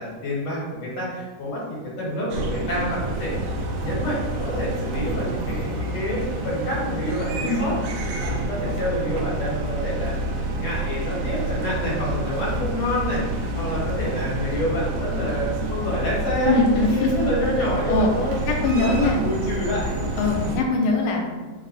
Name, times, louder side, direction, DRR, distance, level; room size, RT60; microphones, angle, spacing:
voice 1, 0.0-1.6 2.0-3.5 3.8-7.7 8.2-10.2 10.6-18.3 18.7-20.0 20.2-20.6, equal, 60° left, -5 dB, 2.0 m, -28 dB
sound 1, 2.3-20.6, right 1 dB, 75° right, 1.6 m, -28 dB
voice 2, 16.5-17.1 17.9-18.1 18.5-19.2 20.2-21.3, left 3 dB, 85° left, 1 dB, 2.1 m, -21 dB
4.9 x 2.1 x 4.0 m, 1.3 s
omnidirectional pair, 3.5 m